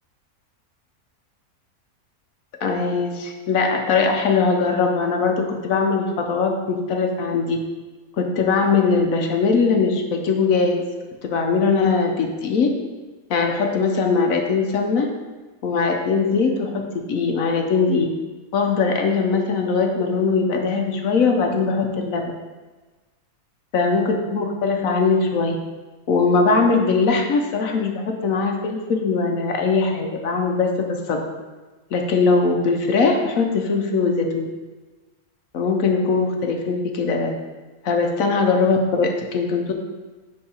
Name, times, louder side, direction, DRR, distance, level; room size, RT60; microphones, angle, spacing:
voice 1, 2.6-7.6 8.2-10.8 11.2-12.7 13.3-15.1 15.6-18.1 18.5-22.3 23.7-25.6 26.1-31.2 31.9-34.5 35.5-37.3 37.8-39.7, left 4 dB, 65° left, 3 dB, 1.2 m, -21 dB
10.0 x 3.8 x 4.4 m, 1.3 s
omnidirectional pair, 1.6 m